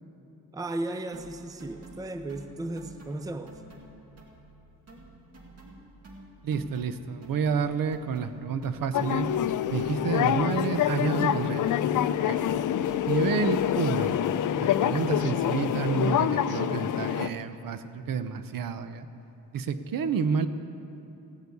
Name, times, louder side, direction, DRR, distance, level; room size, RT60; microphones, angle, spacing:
voice 1, 0.5-3.6, right 2 dB, 10° right, 8 dB, 0.5 m, -35 dB
sound 1, 1.1-4.6 4.9-12.1 12.4-16.2, right 1 dB, 40° right, 2.3 m, -50 dB
voice 2, 6.4-9.3 9.7-12.0 12.3-12.4 13.0-14.2 14.5-19.1 19.5-20.5, right 6 dB, 65° right, 11 dB, 0.8 m, -29 dB
sound 2, 8.9-17.3, left 10 dB, 55° left, 0.5 m, -26 dB
16.0 x 8.1 x 8.4 m, 2.9 s
wide cardioid pair, 140°, 36 cm